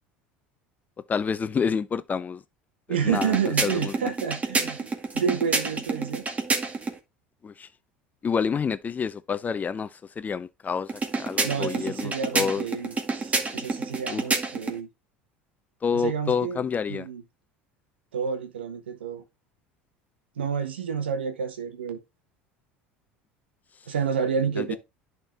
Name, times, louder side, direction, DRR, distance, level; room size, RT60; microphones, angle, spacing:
voice 1, 1.1-2.4 3.0-3.4 3.6-4.1 7.4-7.7 8.2-9.9 10.2-12.6 14.1-14.2 15.8-17.1 24.6-24.7, left 6 dB, 30° left, 0.7 m, -28 dB
voice 2, 2.9-4.9 5.1-6.2 11.4-14.9 15.9-16.6 16.9-17.2 18.1-19.2 20.4-22.0 23.9-24.8, right 7 dB, 90° right, 1.6 m, -29 dB
sound 1, 3.1-7.0 10.9-14.8, right 3 dB, 25° right, 2.2 m, -29 dB
10.5 x 4.5 x 3.4 m
hypercardioid pair, 80°, 6 cm